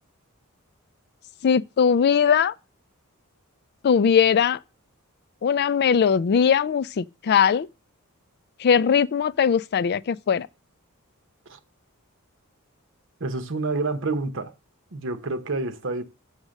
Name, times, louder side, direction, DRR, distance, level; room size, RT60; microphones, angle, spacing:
voice 1, 1.4-2.5 3.8-4.6 5.4-7.7 8.6-10.5, left 7 dB, 50° left, 0.4 m, -20 dB
voice 2, 13.2-14.5 14.9-16.0, right 3 dB, 60° right, 1.0 m, -28 dB
7.4 x 6.1 x 6.4 m
head